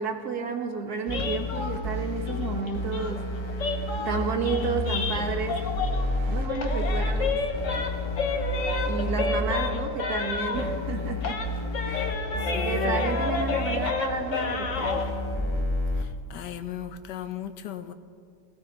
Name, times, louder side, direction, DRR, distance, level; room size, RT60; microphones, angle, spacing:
voice 1, 0.0-3.8 4.1-5.6 6.3-7.5 7.7-7.9 8.9-11.4 11.8-12.1 12.6-15.0, right 5 dB, 65° right, 3 dB, 1.7 m, -31 dB
sound 1, 1.1-6.2 6.4-10.9 11.2-15.1, left 4 dB, 50° left, 1.3 m, -31 dB
sound 2, 1.1-9.5 10.5-13.9 14.7-16.0, left 1 dB, 25° left, 0.7 m, -30 dB
sound 3, 3.7-15.7, right 4 dB, 40° right, 0.7 m, -43 dB
voice 2, 12.4-13.1 16.0-17.9, left 10 dB, 75° left, 9 dB, 1.4 m, -36 dB
18.5 x 16.5 x 4.0 m, 2.2 s
omnidirectional pair, 1.9 m